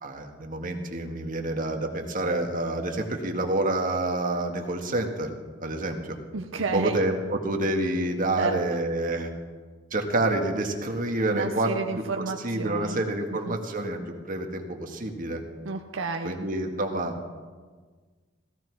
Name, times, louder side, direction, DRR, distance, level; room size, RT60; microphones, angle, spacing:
voice 1, 0.0-5.3 5.6-6.2 6.7-9.3 9.9-11.7 12.4-15.4 16.2-17.2, right 2 dB, 45° right, 3 dB, 1.8 m, -28 dB
voice 2, 6.3-7.1 8.4-8.8 11.3-13.0 13.3-13.6 15.6-16.4, right 4 dB, 75° right, 4 dB, 0.8 m, -31 dB
16.0 x 15.0 x 4.7 m, 1.5 s
head